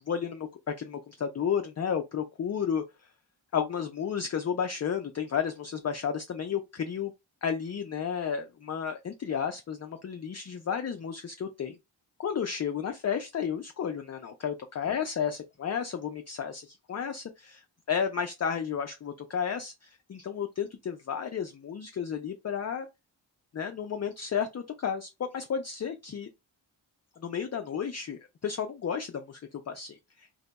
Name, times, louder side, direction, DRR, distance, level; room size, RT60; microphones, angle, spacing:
voice 1, 0.1-2.8 3.5-7.1 7.4-11.8 12.2-22.9 23.5-26.3 27.2-30.3, left 7 dB, 35° left, 0.4 m, -32 dB
2.6 x 2.2 x 3.9 m
wide cardioid pair, 65°, 46 cm